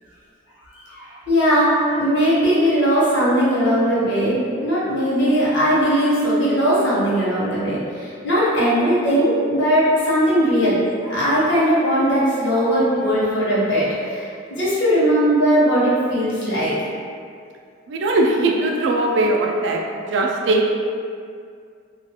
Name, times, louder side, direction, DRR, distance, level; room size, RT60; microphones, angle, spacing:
voice 1, 0.8-16.7, equal, 75° left, -8 dB, 0.9 m, -19 dB
voice 2, 17.9-20.7, right 2 dB, 70° right, 0 dB, 0.3 m, -20 dB
2.3 x 2.3 x 2.8 m, 2.2 s
head